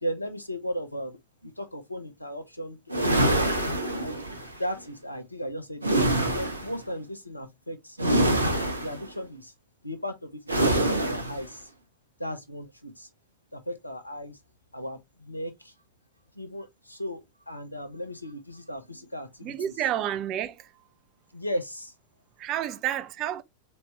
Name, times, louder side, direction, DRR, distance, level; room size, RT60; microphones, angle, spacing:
voice 1, 0.0-3.4 3.9-4.2 4.6-5.9 6.3-8.0 8.4-9.5 9.8-11.7 12.2-13.1 13.5-14.4 14.7-15.7 16.3-19.6 21.3-21.9, equal, 85° left, 0.9 m, -36 dB
sound 1, 2.9-4.5 5.8-6.8 8.0-9.1 10.5-11.4, right 1 dB, 80° right, 0.9 m, -25 dB
voice 2, 19.4-20.7 22.4-23.4, right 11 dB, 35° right, 0.5 m, -30 dB
4.1 x 3.3 x 3.3 m
figure-of-eight pair, 90°, 0 cm